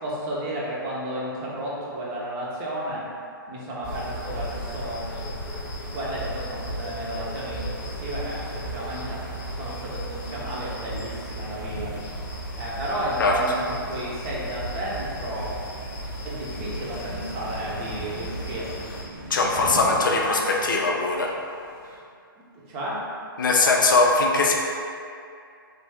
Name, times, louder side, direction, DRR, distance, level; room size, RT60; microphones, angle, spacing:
voice 1, 0.0-3.1 3.5-5.1 5.9-9.2 9.6-12.0 12.5-15.6 16.2-18.9 19.5-20.6 22.7-23.1, right 1 dB, 25° right, -5 dB, 0.7 m, -33 dB
sound 1, 3.8-19.0, equal, 35° left, 1.0 m, -35 dB
sound 2, 16.5-22.0, right 1 dB, 70° right, 1.4 m, -40 dB
voice 2, 19.3-21.4 23.4-24.5, left 3 dB, 60° left, 0 dB, 0.4 m, -21 dB
3.2 x 2.4 x 3.5 m, 2.5 s
figure-of-eight pair, 130°, 12 cm